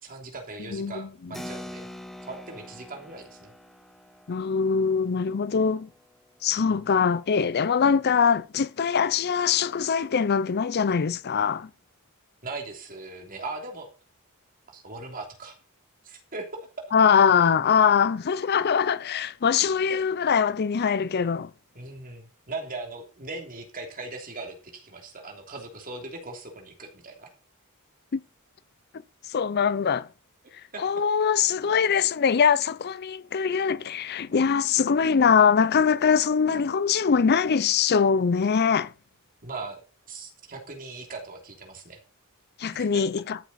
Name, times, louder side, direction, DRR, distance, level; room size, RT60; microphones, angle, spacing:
voice 1, 0.0-1.9 2.3-3.5 6.7-6.8 12.4-13.9 14.7-15.6 16.0-16.7 21.7-27.3 30.7-30.8 39.4-39.8 40.1-42.0 42.7-43.0, right 3 dB, 40° right, 3.0 m, -39 dB
voice 2, 0.7-1.3 4.3-5.9 6.4-11.7 16.9-21.5 28.1-28.2 29.2-30.1 30.8-38.9 42.6-43.4, left 6 dB, 50° left, 0.5 m, -22 dB
Keyboard (musical), 1.3-7.4, left 1 dB, ahead, 1.4 m, -45 dB
14.0 x 7.2 x 4.2 m
head